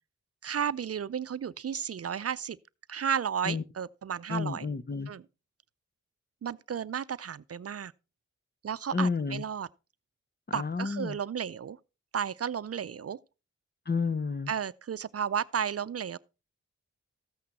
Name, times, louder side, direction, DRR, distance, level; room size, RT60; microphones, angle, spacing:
voice 1, 0.4-2.6 2.9-4.7 5.1-5.2 6.4-7.9 8.6-9.7 10.5-11.8 12.1-13.2 14.5-16.2, right 8 dB, 55° right, 0.5 m, -33 dB
voice 2, 4.3-5.1 8.9-9.4 10.5-11.2 13.9-14.5, left 4 dB, 35° left, 0.9 m, -30 dB
14.0 x 8.5 x 4.2 m
cardioid pair, 50°, 29 cm